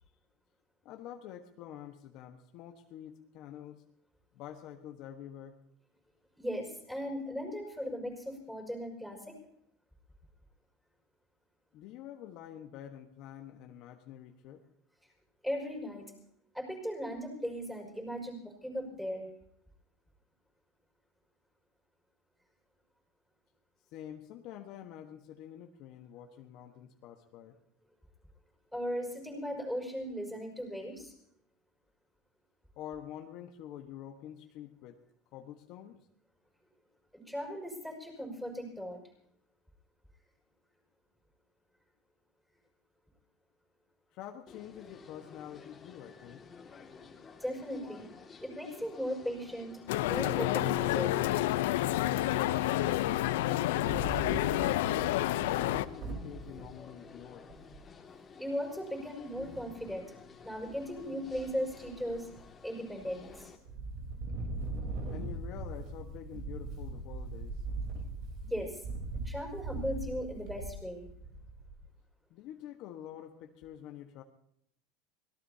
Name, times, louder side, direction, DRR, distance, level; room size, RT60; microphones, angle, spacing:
voice 1, 0.8-3.8 4.3-5.6 11.7-14.6 23.9-27.6 32.8-35.0 35.3-36.1 44.1-46.4 54.0-57.5 65.1-67.6 72.3-74.2, left 10 dB, 55° left, 4 dB, 1.3 m, -47 dB
voice 2, 6.4-9.4 15.4-16.0 16.5-19.3 28.7-31.1 37.3-39.0 47.4-48.1 48.4-49.7 50.0-51.1 58.4-60.1 60.4-62.3 62.6-63.5 68.5-68.8 69.2-71.1, equal, ahead, 0 dB, 5.5 m, -37 dB
sound 1, 44.5-63.6, left 5 dB, 25° left, 2.1 m, -53 dB
sound 2, 49.9-55.8, left 15 dB, 80° left, 0.6 m, -29 dB
Wind, 53.7-56.7 57.2-57.3 57.5-57.9 59.3-59.9 60.4-60.9 61.3-62.4 62.9-63.4 63.7-71.9, right 2 dB, 55° right, 3.7 m, -40 dB
25.0 x 18.5 x 2.8 m, 0.72 s
supercardioid pair, 125°, 0 cm